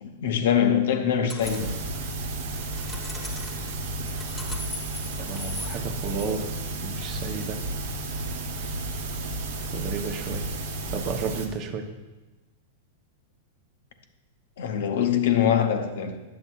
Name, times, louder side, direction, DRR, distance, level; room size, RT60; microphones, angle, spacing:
voice 1, 0.0-1.8 14.6-16.2, left 8 dB, 75° left, 6 dB, 0.7 m, -23 dB
sound 1, 1.3-1.8 2.5-6.3, left 2 dB, 10° left, 1.0 m, -40 dB
sound 2, 1.4-11.5, right 2 dB, 75° right, 0.9 m, -32 dB
voice 2, 5.2-7.6 9.7-10.5 10.9-11.9, right 5 dB, 40° right, 6 dB, 0.7 m, -32 dB
9.5 x 7.1 x 2.3 m, 1.1 s
hypercardioid pair, 135°, 0 cm